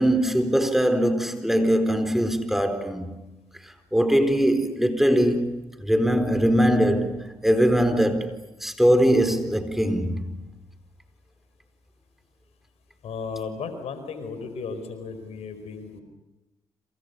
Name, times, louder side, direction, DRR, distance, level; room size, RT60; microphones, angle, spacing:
voice 1, 0.0-3.1 3.9-10.3, equal, 5° right, 4.4 m, -22 dB
voice 2, 13.0-16.0, left 5 dB, 75° left, 4.7 m, -35 dB
29.0 x 27.5 x 7.0 m
supercardioid pair, 50°, 11 cm